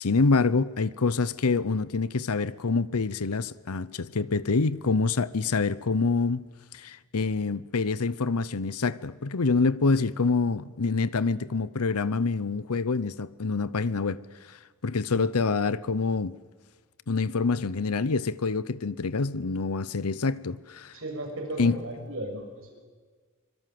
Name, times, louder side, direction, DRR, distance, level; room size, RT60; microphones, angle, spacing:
voice 1, 0.0-6.5 6.7-14.2 14.8-16.3 17.1-20.9 21.6-21.8, left 4 dB, 85° left, 0.8 m, -26 dB
voice 2, 20.9-22.8, right 1 dB, 65° right, 6.4 m, -36 dB
24.5 x 23.0 x 7.8 m
head